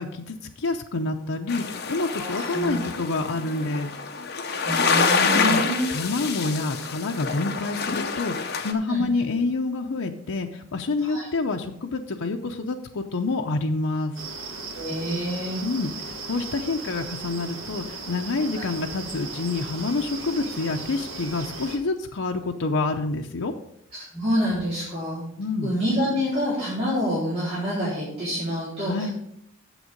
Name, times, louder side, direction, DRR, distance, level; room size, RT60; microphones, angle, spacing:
voice 1, 0.0-3.9 5.4-5.6 5.9-14.1 15.6-23.5 25.4-25.8 28.8-29.1, left 3 dB, 75° left, 2 dB, 0.7 m, -28 dB
sound 1, 1.5-8.7, left 5 dB, 50° left, 1.0 m, -27 dB
voice 2, 2.1-2.8 4.6-5.9 8.9-9.3 11.0-11.3 14.7-15.6 18.5-18.7 24.1-25.2 25.6-29.1, equal, 25° right, -11 dB, 4.3 m, -27 dB
sound 2, 14.2-21.8, right 3 dB, 75° right, 1.8 m, -37 dB
9.1 x 7.2 x 5.2 m, 0.74 s
head